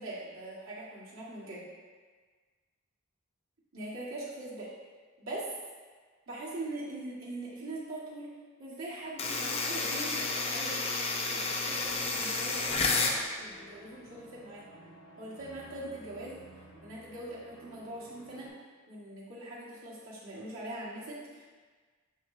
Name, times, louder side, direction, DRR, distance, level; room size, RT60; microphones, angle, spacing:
voice 1, 0.0-1.6 3.7-4.7 5.2-5.4 6.3-10.8 11.2-14.7 15.2-16.4 16.8-18.5 18.9-21.4, right 1 dB, 90° right, -7 dB, 1.9 m, -42 dB
sound 1, 9.2-13.2, left 3 dB, 30° left, 0.6 m, -31 dB
sound 2, 11.7-18.5, equal, 80° left, 1.7 m, -54 dB
6.2 x 6.2 x 2.8 m, 1.4 s
head